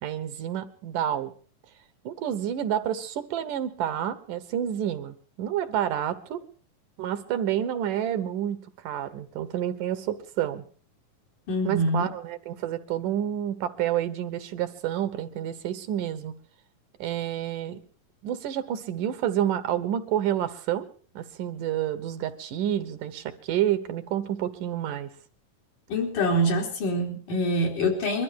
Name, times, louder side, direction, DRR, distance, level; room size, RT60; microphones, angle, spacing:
voice 1, 0.0-1.3 2.0-6.4 7.0-10.6 11.6-16.3 17.0-17.8 18.2-20.9 21.2-25.1, right 10 dB, 85° right, 10 dB, 2.8 m, -29 dB
voice 2, 11.5-12.1 25.9-28.2, equal, 90° left, 0 dB, 5.1 m, -25 dB
22.5 x 13.0 x 4.7 m, 0.43 s
omnidirectional pair, 3.6 m